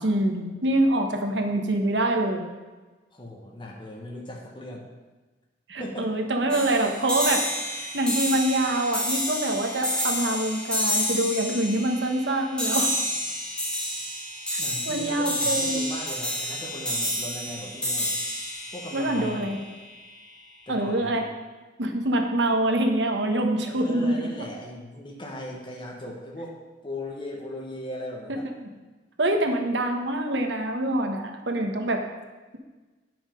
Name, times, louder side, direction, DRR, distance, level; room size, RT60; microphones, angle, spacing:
voice 1, 0.0-2.5 5.7-7.5 7.7-12.9 14.9-15.9 18.9-19.6 20.7-21.2 21.8-24.4 29.2-32.0, right 1 dB, 75° right, 3 dB, 1.1 m, -25 dB
voice 2, 3.1-4.8 5.8-6.2 14.6-18.1 18.7-19.6 20.7-21.3 23.7-26.6 26.8-28.5, left 1 dB, 30° left, -1 dB, 1.2 m, -38 dB
sound 1, 6.5-20.0, left 1 dB, 5° left, 2.0 m, -29 dB
9.3 x 6.1 x 5.2 m, 1.2 s
head